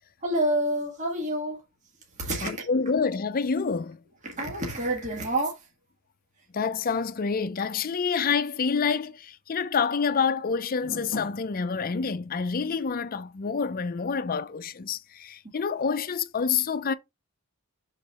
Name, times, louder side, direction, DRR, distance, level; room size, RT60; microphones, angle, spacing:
voice 1, 0.2-1.6 2.2-2.7 4.2-5.7, right 1 dB, 35° right, 1.6 m, -28 dB
voice 2, 2.4-4.0 6.5-16.9, left 5 dB, 40° left, 0.5 m, -27 dB
6.5 x 3.9 x 4.1 m
head